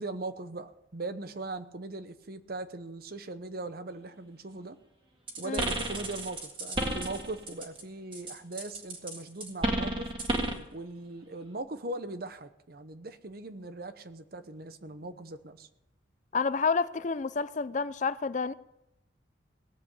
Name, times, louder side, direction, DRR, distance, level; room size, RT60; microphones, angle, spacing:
voice 1, 0.0-4.8 5.4-10.1 10.7-15.7, right 2 dB, 50° right, 0.9 m, -40 dB
sound 1, 5.3-7.8 8.1-10.7, right 1 dB, 25° right, 1.8 m, -32 dB
voice 2, 16.3-18.5, left 5 dB, 40° left, 0.4 m, -29 dB
18.0 x 7.8 x 8.2 m
head